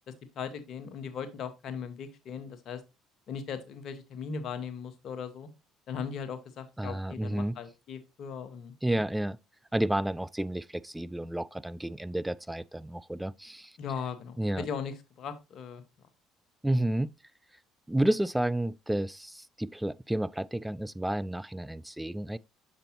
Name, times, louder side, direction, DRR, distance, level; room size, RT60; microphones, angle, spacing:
voice 1, 0.1-2.8 3.3-5.5 5.9-9.0 13.8-15.8, left 6 dB, 55° left, 1.1 m, -38 dB
voice 2, 6.8-7.6 8.8-9.4 9.7-13.7 14.4-14.7 16.6-17.1 17.9-22.4, right 1 dB, 5° right, 0.3 m, -31 dB
6.8 x 5.2 x 3.0 m
hypercardioid pair, 55°, 0 cm